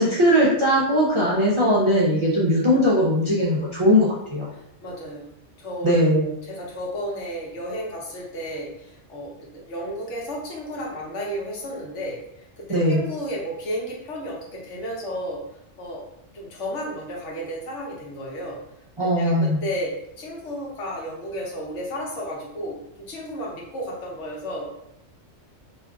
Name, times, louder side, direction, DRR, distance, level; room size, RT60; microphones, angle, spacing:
voice 1, 0.0-4.5 5.8-6.3 12.7-13.0 19.0-19.6, equal, 40° right, -7 dB, 0.4 m, -19 dB
voice 2, 4.5-5.3 5.6-5.9 6.5-12.2 12.6-15.4 15.8-16.0 16.3-18.6 19.0-24.7, equal, 75° left, -2 dB, 1.1 m, -33 dB
2.5 x 2.3 x 3.5 m, 0.78 s
omnidirectional pair, 1.2 m